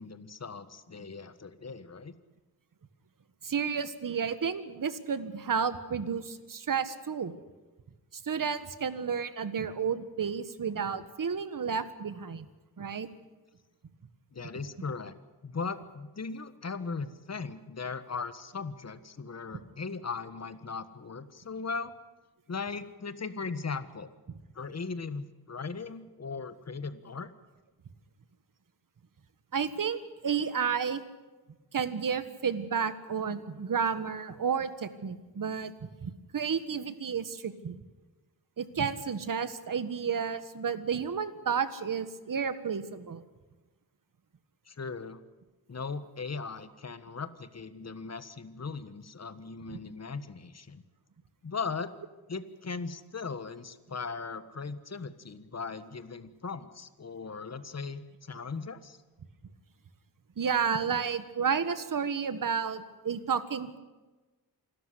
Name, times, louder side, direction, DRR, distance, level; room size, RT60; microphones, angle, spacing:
voice 1, 0.0-2.1 14.3-15.1 15.4-21.9 22.5-24.1 24.5-27.3 44.7-45.2 45.7-50.8 51.4-51.9 52.3-59.0, left 4 dB, 45° left, 13 dB, 1.5 m, -38 dB
voice 2, 3.4-7.3 8.1-12.5 12.8-13.1 29.5-31.0 31.7-35.7 36.0-37.8 38.6-43.2 49.7-49.8 60.4-63.8, right 6 dB, 60° right, 13 dB, 1.6 m, -31 dB
27.0 x 13.0 x 10.0 m, 1.2 s
wide cardioid pair, 105°, 37 cm